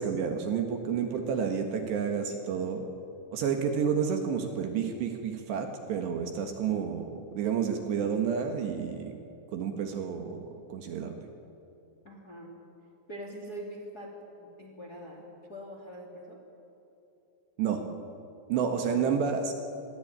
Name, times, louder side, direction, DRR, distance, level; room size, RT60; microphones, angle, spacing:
voice 1, 0.0-2.8 3.3-9.1 9.5-11.2 17.6-17.8 18.5-19.5, right 7 dB, 65° right, 5 dB, 3.4 m, -30 dB
voice 2, 12.0-12.5 13.1-16.4 18.8-19.3, equal, 25° left, 2 dB, 2.4 m, -44 dB
27.0 x 22.0 x 8.9 m, 2.8 s
omnidirectional pair, 5.8 m